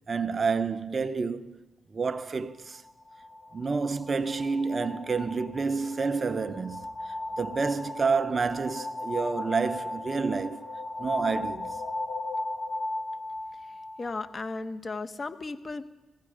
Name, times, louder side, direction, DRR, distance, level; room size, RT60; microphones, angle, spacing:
voice 1, 0.1-1.6 1.9-2.8 3.5-10.7 11.0-11.8, right 4 dB, 45° right, 0.8 m, -29 dB
sound 1, 2.7-14.4, left 2 dB, 60° left, 1.4 m, -37 dB
voice 2, 13.7-15.8, left 3 dB, 45° left, 1.2 m, -36 dB
16.5 x 15.0 x 5.0 m
supercardioid pair, 40°, 0 cm